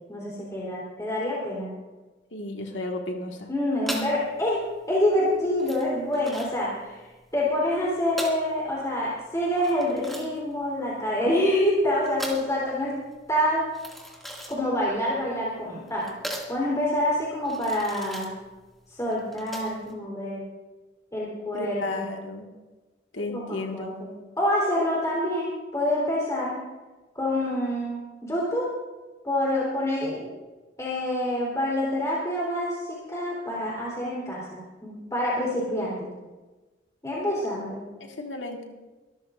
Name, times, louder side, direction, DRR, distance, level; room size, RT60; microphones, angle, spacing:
voice 1, 0.1-1.7 3.5-4.6 4.9-7.0 7.3-12.9 13.3-13.6 14.5-16.1 16.5-18.3 18.9-20.4 21.1-22.1 23.3-24.1 24.4-26.6 27.1-28.7 29.2-30.3 30.8-36.1 37.0-37.8, left 1 dB, 15° left, -6 dB, 3.9 m, -27 dB
voice 2, 2.3-3.5 21.5-22.5 23.1-23.9 37.1-37.6 38.0-38.6, left 2 dB, 90° left, 2 dB, 1.9 m, -34 dB
sound 1, 3.8-19.9, equal, ahead, 2.4 m, -40 dB
24.5 x 13.5 x 2.7 m, 1.2 s
head